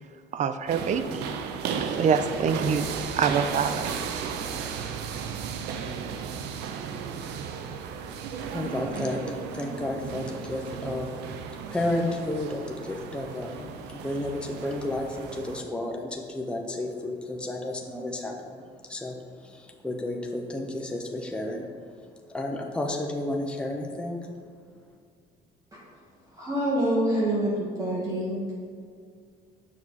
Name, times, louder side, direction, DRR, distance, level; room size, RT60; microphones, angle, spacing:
voice 1, 0.3-1.4 2.0-3.9, right 6 dB, 45° right, 11 dB, 0.5 m, -26 dB
sound 1, 0.7-15.6, right 6 dB, 90° right, 0.6 m, -35 dB
voice 2, 8.5-11.1 11.7-22.0 22.3-24.3, left 1 dB, 5° left, 1 dB, 0.8 m, -32 dB
voice 3, 26.3-28.5, right 1 dB, 20° right, -6 dB, 1.8 m, -26 dB
7.4 x 6.1 x 4.1 m, 2.2 s
cardioid pair, 110°, 17 cm